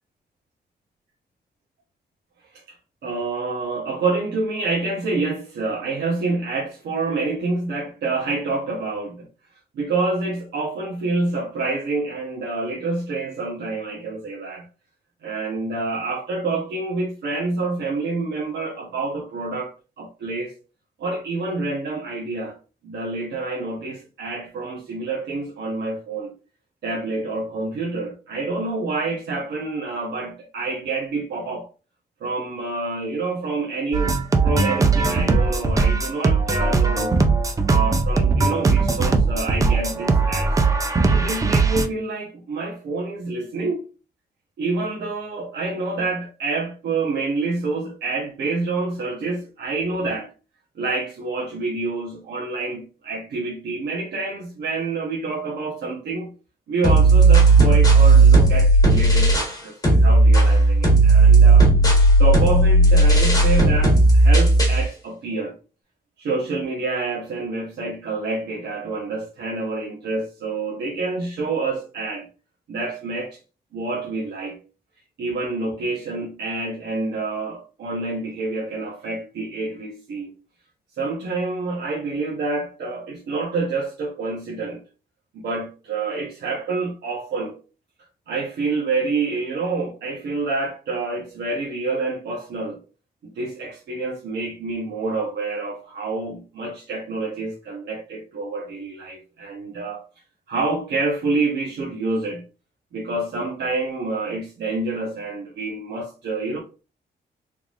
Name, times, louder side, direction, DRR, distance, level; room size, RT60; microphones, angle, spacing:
voice 1, 3.0-9.3 9.7-14.7 15.2-20.5 21.0-22.6 22.8-26.3 26.8-31.7 32.2-34.2 34.4-37.2 37.6-40.6 41.1-43.8 44.6-50.3 50.7-56.3 56.7-61.7 62.2-65.5 66.2-72.3 72.7-73.4 73.7-74.6 75.2-80.3 81.0-84.8 85.3-87.6 88.3-92.8 93.3-100.0 100.5-102.4 102.9-106.6, right 3 dB, 85° right, 1.0 m, -27 dB
sound 1, 33.9-41.9, right 4 dB, 20° right, 0.4 m, -19 dB
sound 2, 56.8-59.6 59.8-64.8, right 2 dB, 20° left, 1.3 m, -14 dB
3.5 x 3.2 x 2.5 m
wide cardioid pair, 145°, 17 cm